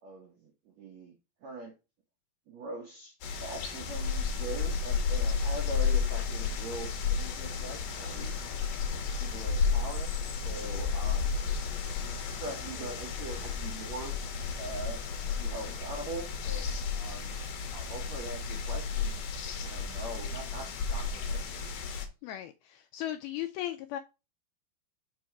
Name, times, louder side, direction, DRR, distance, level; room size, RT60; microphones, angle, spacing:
voice 1, 0.0-1.1 1.4-1.7 2.5-8.4 9.2-11.4 12.2-14.2 14.6-15.0 15.3-16.7 16.9-17.4 17.7-19.2 19.6-21.7, right 3 dB, 70° right, 1.7 m, -42 dB
sound 1, 3.2-22.1, left 5 dB, 65° left, 2.4 m, -32 dB
voice 2, 22.2-24.0, left 13 dB, 85° left, 2.2 m, -37 dB
6.1 x 4.7 x 5.8 m
omnidirectional pair, 4.8 m